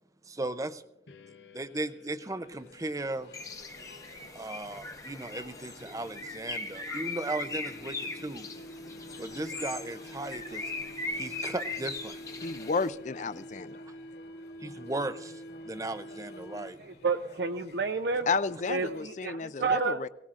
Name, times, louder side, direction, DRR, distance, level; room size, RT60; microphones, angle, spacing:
voice 1, 0.2-0.8 1.5-3.3 4.3-8.5 9.2-10.7 11.1-12.2 14.6-16.8, right 2 dB, 20° right, 12 dB, 0.5 m, -36 dB
sound 1, 1.1-17.0, equal, 80° left, 0.8 m, -48 dB
sound 2, 2.4-19.0, left 1 dB, 60° left, 2.7 m, -54 dB
Bird, 3.3-12.9, left 3 dB, 20° left, 0.9 m, -39 dB
voice 2, 12.4-13.8 18.3-20.1, left 4 dB, 40° left, 15 dB, 0.4 m, -32 dB
voice 3, 16.8-18.3 18.7-20.1, right 4 dB, 60° right, 7 dB, 0.6 m, -30 dB
23.0 x 17.5 x 2.5 m, 0.89 s
head